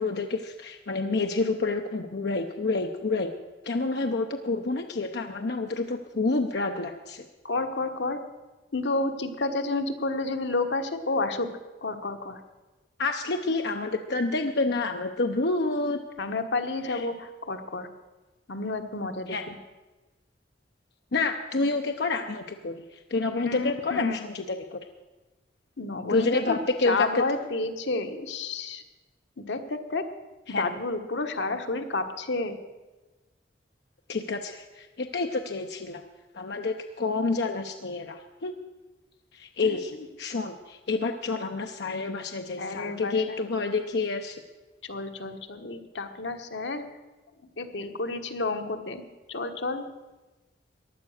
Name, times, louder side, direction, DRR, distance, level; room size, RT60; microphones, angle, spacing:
voice 1, 0.0-3.3 3.6-7.2 13.0-16.0 16.8-17.1 19.3-19.5 21.1-24.8 26.0-27.2 30.5-30.7 34.1-36.0 36.3-38.5 39.3-39.9 40.2-44.4, left 3 dB, 65° left, 5 dB, 0.8 m, -28 dB
voice 2, 7.4-8.2 8.7-11.5 11.8-12.4 16.2-17.9 18.5-19.5 23.5-24.2 25.8-26.6 26.8-28.8 29.4-30.0 30.6-32.5 39.6-39.8 42.6-43.4 44.8-46.9 47.6-49.0 49.3-49.8, left 3 dB, 90° left, 6 dB, 1.3 m, -30 dB
15.5 x 11.0 x 6.5 m, 1.2 s
head